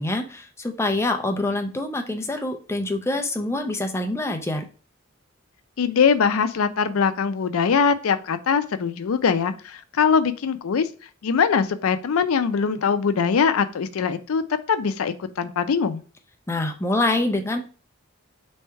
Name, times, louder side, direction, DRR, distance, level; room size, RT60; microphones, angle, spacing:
voice 1, 0.0-4.6 16.5-17.6, left 2 dB, 10° left, 4 dB, 0.5 m, -25 dB
voice 2, 5.8-10.9 11.2-14.4 14.7-16.0, left 6 dB, 85° left, 11 dB, 0.4 m, -22 dB
3.5 x 3.2 x 4.4 m, 0.38 s
head